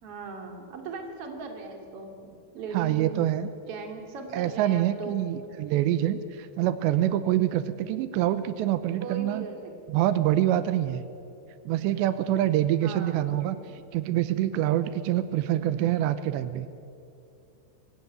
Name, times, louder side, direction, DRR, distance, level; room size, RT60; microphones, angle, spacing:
voice 1, 0.0-3.3 3.7-5.2 9.0-10.3 12.8-13.5, right 4 dB, 40° right, 3 dB, 3.1 m, -39 dB
voice 2, 2.7-3.5 4.3-9.5 9.9-11.1 11.7-13.6 13.9-16.7, right 12 dB, 85° right, 13 dB, 3.0 m, -25 dB
25.5 x 16.5 x 9.3 m, 2.6 s
omnidirectional pair, 5.0 m